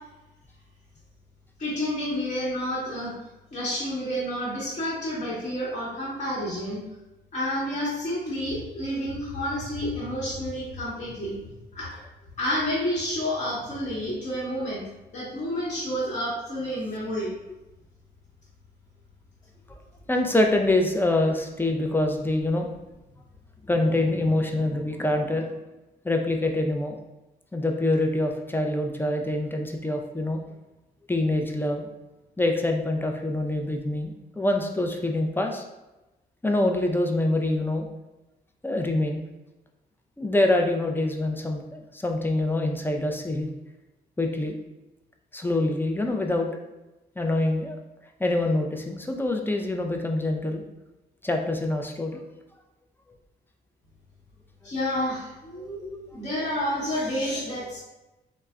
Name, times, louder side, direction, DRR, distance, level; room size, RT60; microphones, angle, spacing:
voice 1, 1.6-3.1 3.5-6.8 7.3-12.0 12.4-17.3 54.6-55.8 56.1-57.8, equal, 35° left, -7 dB, 1.0 m, -30 dB
voice 2, 20.1-22.7 23.6-25.5 26.0-27.0 27.5-30.4 31.1-31.9 32.4-35.6 36.4-37.9 38.6-39.2 40.2-43.5 44.2-44.6 45.3-46.5 47.2-47.8 48.2-50.6 51.2-52.2 55.8-56.0, left 2 dB, 10° left, 3 dB, 0.4 m, -25 dB
3.2 x 2.1 x 2.3 m, 1.0 s
supercardioid pair, 55°, 21 cm